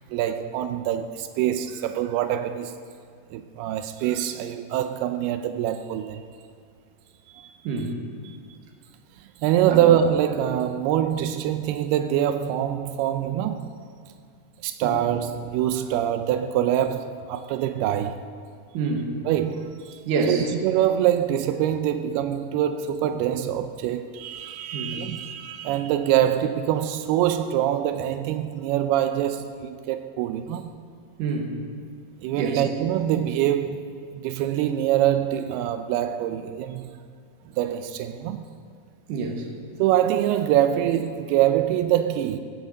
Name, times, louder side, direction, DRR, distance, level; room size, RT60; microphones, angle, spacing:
voice 1, 0.1-2.8 3.3-6.2 7.3-7.5 8.3-8.4 9.4-13.7 14.6-18.3 19.3-20.0 20.3-30.7 32.2-37.0 37.6-38.4 39.8-42.4, right 11 dB, 90° right, 2.6 m, -24 dB
voice 2, 7.6-8.0 9.7-9.8 14.8-15.0 18.7-19.1 20.1-20.5 24.7-25.0 31.2-31.5 32.4-32.6 39.1-39.5, right 4 dB, 60° right, 2.7 m, -27 dB
18.0 x 8.1 x 8.1 m
omnidirectional pair, 4.5 m